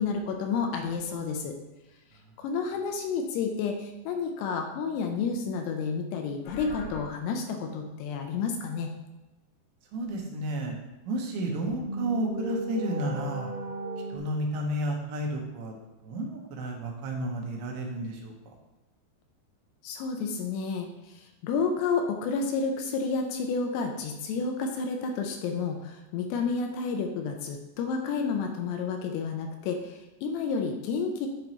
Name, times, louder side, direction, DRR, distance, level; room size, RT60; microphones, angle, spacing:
voice 1, 0.0-1.5 2.4-8.9 19.8-31.3, left 5 dB, 80° left, 3 dB, 2.6 m, -30 dB
sound 1, 6.4-7.0 11.4-14.2, right 2 dB, 65° left, 2.7 m, -36 dB
voice 2, 9.9-10.8 11.1-13.5 14.1-15.7 16.0-18.3, right 1 dB, 80° right, 0 dB, 3.1 m, -32 dB
10.5 x 3.9 x 3.0 m, 1.0 s
omnidirectional pair, 5.1 m